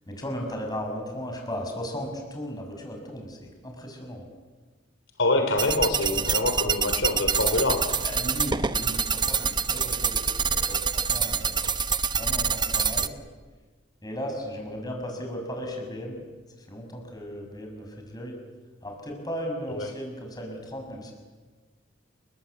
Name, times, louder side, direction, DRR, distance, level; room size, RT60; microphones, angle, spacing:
voice 1, 0.1-4.3 6.1-6.5 8.0-10.2 10.5-11.8 12.1-13.1 14.0-16.2 16.7-18.4 18.8-21.1, equal, 20° left, 2 dB, 6.5 m, -36 dB
voice 2, 5.2-7.9 19.7-19.9, left 2 dB, 75° left, 6 dB, 3.6 m, -25 dB
sound 1, 5.6-13.1, right 6 dB, 25° right, 0.9 m, -26 dB
29.5 x 23.0 x 8.4 m, 1.3 s
head